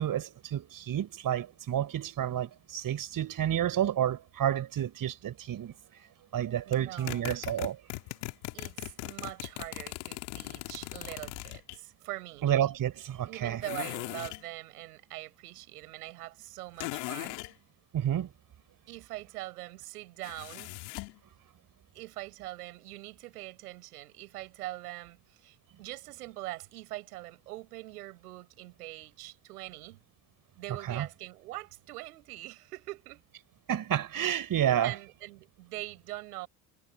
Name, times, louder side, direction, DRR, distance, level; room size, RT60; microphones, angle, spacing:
voice 1, 0.0-5.7 6.3-7.8 12.4-13.6 17.9-18.3 30.9-31.1 33.7-35.0, right 10 dB, 45° right, 5.7 m, -30 dB
voice 2, 6.6-7.4 8.5-12.5 13.3-17.4 18.9-20.8 21.9-30.0 30.6-33.2 34.8-36.5, right 18 dB, 80° right, 7.2 m, -43 dB
Hollow tube zipper sound, 6.7-11.8 13.6-14.4 16.8-17.5 20.2-21.2, left 26 dB, 70° left, 2.6 m, -39 dB
hypercardioid pair, 70°, 45 cm